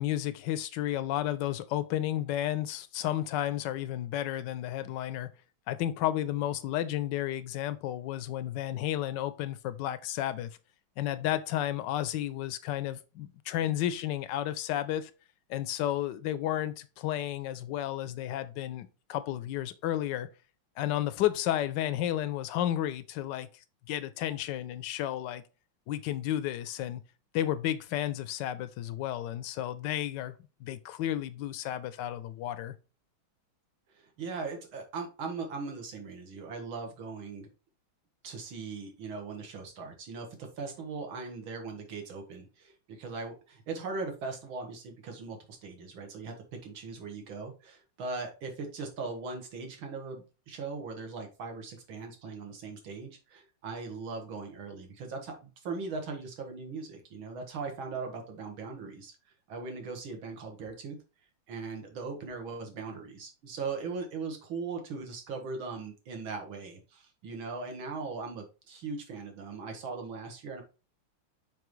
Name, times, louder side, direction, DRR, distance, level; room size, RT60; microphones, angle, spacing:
voice 1, 0.0-5.3 5.7-10.5 11.0-15.1 15.5-20.3 20.8-23.5 23.9-25.4 25.9-27.0 27.3-30.3 30.6-32.7, left 12 dB, 75° left, 1.1 m, -32 dB
voice 2, 33.9-37.5 38.2-46.4 46.6-59.1 59.5-61.0 61.5-70.6, right 4 dB, 75° right, 2.2 m, -39 dB
6.0 x 5.1 x 3.1 m
omnidirectional pair, 2.3 m